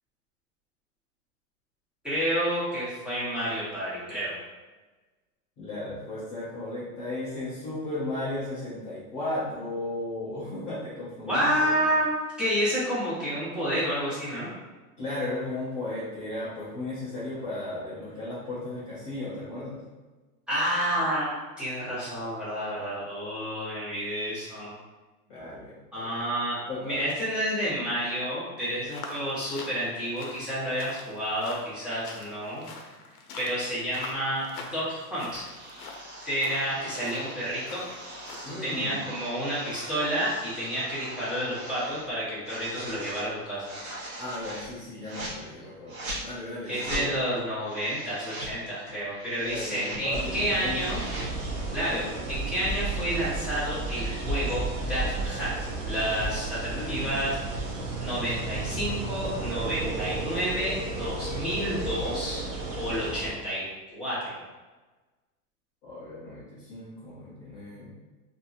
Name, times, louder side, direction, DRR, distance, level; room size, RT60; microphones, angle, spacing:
voice 1, 2.0-4.4 11.2-12.1 12.4-14.5 20.5-24.7 25.9-26.6 26.8-32.7 33.4-35.4 36.2-37.8 38.5-43.8 46.7-51.0 51.7-57.7 58.0-62.4 62.8-63.6 63.9-64.4, equal, ahead, -11 dB, 0.8 m, -30 dB
voice 2, 5.6-11.9 15.0-19.8 25.3-26.1 26.7-27.0 38.4-39.0 44.2-47.1 49.4-50.8 51.9-52.0 56.7-57.1 65.8-67.9, left 2 dB, 15° left, -11 dB, 0.4 m, -35 dB
sound 1, 28.9-38.8, left 4 dB, 80° left, 0.6 m, -45 dB
sound 2, 34.0-34.2 35.3-42.1 42.4-43.2 43.6-44.7 45.0-45.3 45.9-46.2 46.6-47.1 47.6-48.5 49.0-50.0 50.4-51.3, right 1 dB, 65° right, 1.1 m, -40 dB
sound 3, 50.1-63.3, right 3 dB, 40° right, 0.6 m, -33 dB
2.7 x 2.6 x 2.4 m, 1.2 s
supercardioid pair, 145°, 45 cm